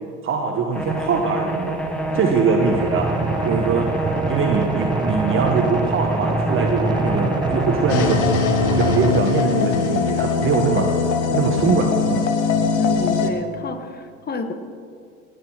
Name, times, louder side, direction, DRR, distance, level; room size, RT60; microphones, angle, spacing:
voice 1, 0.2-1.8 2.1-3.1 3.4-3.9 4.3-8.3 8.8-10.9 11.3-12.3, right 5 dB, 35° right, 2 dB, 1.2 m, -22 dB
sound 1, 0.7-8.1, right 2 dB, 5° left, 1.5 m, -26 dB
sound 2, 2.7-9.2, right 3 dB, 10° right, 0.6 m, -25 dB
sound 3, 7.9-13.3, left 5 dB, 75° left, 1.3 m, -21 dB
voice 2, 12.8-14.5, left 4 dB, 25° left, 8 dB, 1.3 m, -29 dB
18.5 x 6.8 x 6.2 m, 2.3 s
hypercardioid pair, 80°, 36 cm